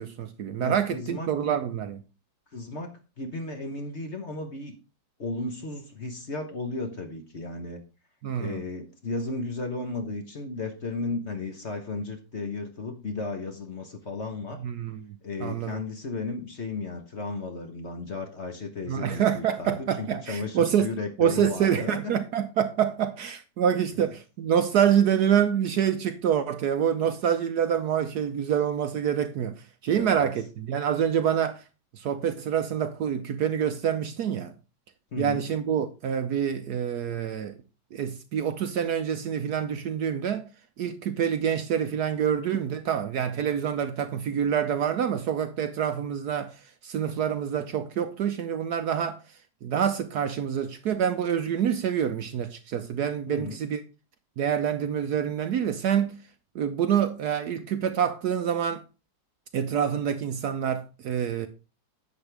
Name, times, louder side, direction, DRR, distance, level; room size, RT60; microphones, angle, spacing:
voice 1, 0.0-2.0 8.2-8.6 14.6-15.2 15.4-15.7 18.9-20.9 21.2-29.5 29.8-31.6 32.0-34.5 35.2-37.5 37.9-40.5 40.8-46.6 46.8-49.2 49.6-53.8 54.4-56.2 56.5-58.8 59.5-61.5, right 8 dB, 70° right, 1.1 m, -26 dB
voice 2, 0.6-1.6 2.5-4.7 5.2-7.8 8.4-14.6 15.2-22.2 29.9-30.3 35.1-35.5 53.3-53.6, left 3 dB, 40° left, 1.2 m, -34 dB
10.5 x 8.0 x 3.4 m
omnidirectional pair, 2.1 m